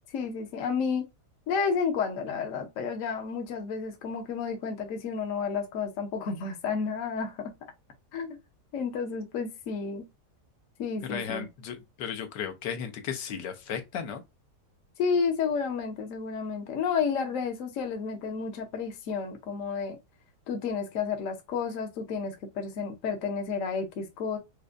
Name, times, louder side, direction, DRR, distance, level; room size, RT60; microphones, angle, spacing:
voice 1, 0.1-1.0 1.5-7.5 8.1-8.4 8.7-10.0 10.8-11.5 15.0-20.0 20.5-24.4, left 5 dB, 60° left, 1.0 m, -31 dB
voice 2, 11.0-14.2, left 7 dB, 80° left, 1.4 m, -35 dB
5.0 x 2.2 x 2.4 m
omnidirectional pair, 1.8 m